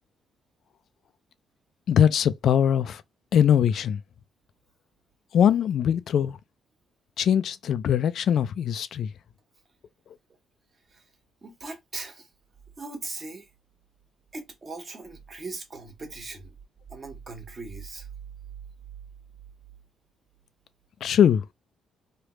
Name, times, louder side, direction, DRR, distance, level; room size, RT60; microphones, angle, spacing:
voice 1, 1.9-3.0 3.3-4.0 5.3-6.4 7.2-9.1 21.0-21.4, left 9 dB, 65° left, 0.3 m, -21 dB
voice 2, 11.4-12.3 12.8-13.5 14.3-16.5 16.9-18.1, right 3 dB, 35° right, 1.2 m, -39 dB
3.2 x 2.3 x 3.1 m
cardioid pair, 90°, 0 cm